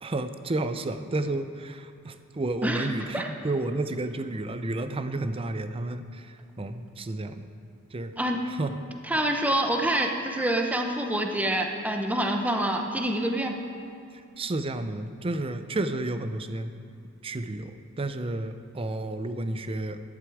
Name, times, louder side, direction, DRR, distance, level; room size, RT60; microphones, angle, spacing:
voice 1, 0.0-7.5 7.9-8.1 8.5-8.8 14.4-16.7 17.2-20.0, right 2 dB, 25° right, 10 dB, 0.5 m, -31 dB
voice 2, 9.1-13.5, right 1 dB, 5° right, 3 dB, 0.9 m, -26 dB
11.0 x 11.0 x 4.9 m, 2.5 s
head